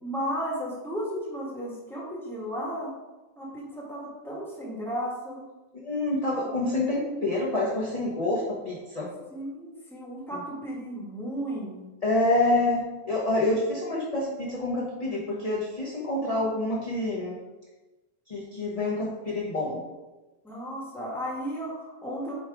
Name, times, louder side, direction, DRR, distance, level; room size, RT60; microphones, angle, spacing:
voice 1, 0.0-2.9 3.4-5.4 9.3-11.8 20.4-22.3, equal, ahead, -4 dB, 1.4 m, -34 dB
voice 2, 5.7-9.1 12.0-17.3 18.3-19.8, left 2 dB, 25° left, -6 dB, 1.0 m, -27 dB
8.0 x 3.2 x 4.8 m, 1.1 s
omnidirectional pair, 1.6 m